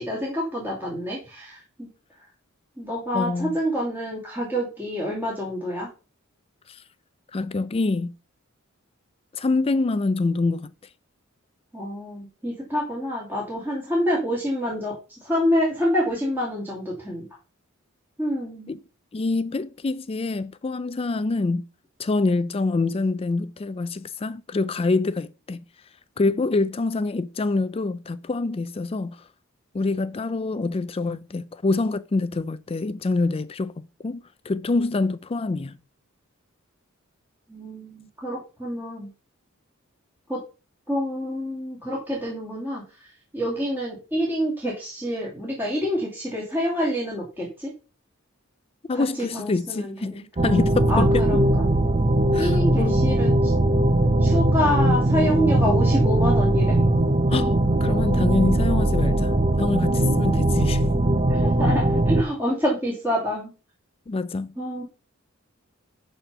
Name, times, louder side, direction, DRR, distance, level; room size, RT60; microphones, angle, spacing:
voice 1, 0.0-1.9 2.8-5.9 11.7-14.9 15.2-17.3 18.2-18.8 37.5-39.1 40.3-40.4 40.9-47.7 48.9-50.2 50.9-51.6 52.3-53.5 54.2-56.8 60.1-60.2 61.3-63.5 64.6-64.8, equal, 10° right, 2.7 m, -27 dB
voice 2, 3.1-3.6 6.7-6.8 7.3-8.1 9.3-10.7 18.7-18.8 19.1-21.6 22.0-25.6 26.2-29.3 29.7-35.8 48.9-51.3 52.3-53.0 57.3-60.8 64.1-64.5, left 3 dB, 30° left, 0.4 m, -26 dB
sound 1, 50.4-62.2, right 1 dB, 30° right, 0.6 m, -20 dB
11.0 x 4.3 x 5.6 m
head